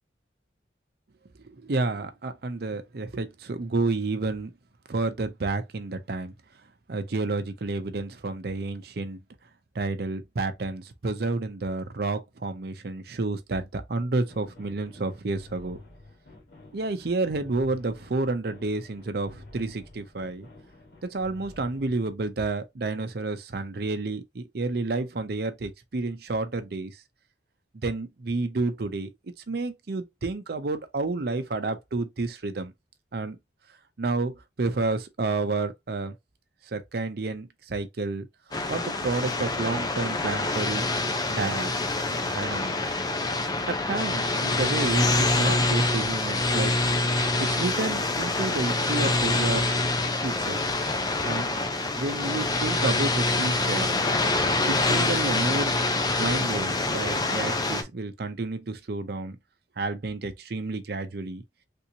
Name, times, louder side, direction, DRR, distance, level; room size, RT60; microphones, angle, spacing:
voice 1, 1.6-4.5 4.9-6.3 6.9-9.2 9.7-15.8 16.7-20.5 21.1-26.9 27.7-29.1 29.5-32.7 33.1-33.4 34.0-36.1 36.7-38.3 38.7-40.9 41.3-41.7 42.1-42.9 43.6-46.7 47.4-49.7 50.2-50.6 51.2-51.5 52.0-53.9 54.7-55.7 56.2-59.4 59.8-61.4, right 3 dB, 60° right, 0.6 m, -30 dB
sound 1, 14.3-22.1, left 2 dB, 60° left, 1.5 m, -49 dB
sound 2, 38.5-57.8, left 2 dB, 20° left, 0.4 m, -26 dB
3.4 x 2.9 x 2.7 m
head